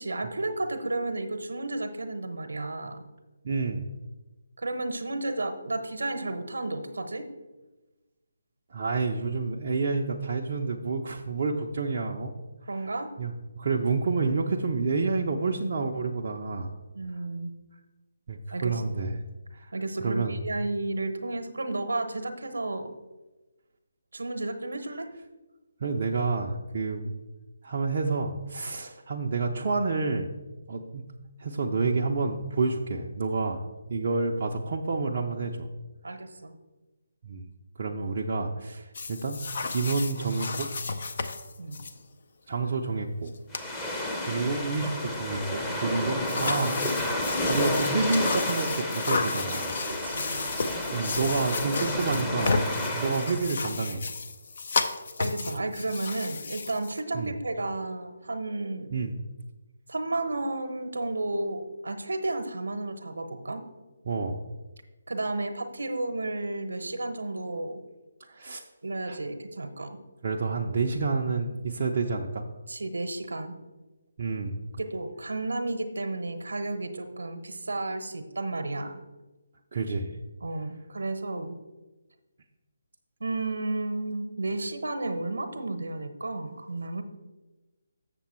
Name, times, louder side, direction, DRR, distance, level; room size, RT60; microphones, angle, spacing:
voice 1, 0.0-3.0 4.6-7.3 12.7-13.1 16.9-17.5 18.5-18.8 19.7-22.9 24.1-25.1 36.0-36.5 41.6-41.8 50.0-50.5 55.2-59.0 59.9-63.6 65.1-67.8 68.8-70.0 72.7-73.5 74.8-79.0 80.4-81.6 83.2-87.0, right 2 dB, 70° right, 8 dB, 0.9 m, -32 dB
voice 2, 3.4-3.8 8.7-12.3 13.2-16.7 18.3-19.2 19.5-19.7 20.0-20.3 25.8-27.1 27.6-30.3 30.7-31.0 31.4-33.6 33.9-35.7 37.2-37.5 37.8-39.5 39.7-40.7 42.5-43.4 43.8-44.0 44.3-46.9 47.5-49.8 50.9-52.6 52.9-54.1 57.1-57.3 58.9-59.1 64.1-64.4 68.2-68.6 69.1-69.2 70.2-72.5 74.2-74.6 79.7-80.2, right 4 dB, 45° right, 0 dB, 0.6 m, -29 dB
sound 1, 38.9-41.9 43.3-43.4 43.5-43.7 46.3-57.0, left 4 dB, 50° left, 0.6 m, -32 dB
sound 2, 43.5-53.5, left 1 dB, 10° left, 0.8 m, -31 dB
7.2 x 6.9 x 4.3 m, 1.1 s
figure-of-eight pair, 145°, 0 cm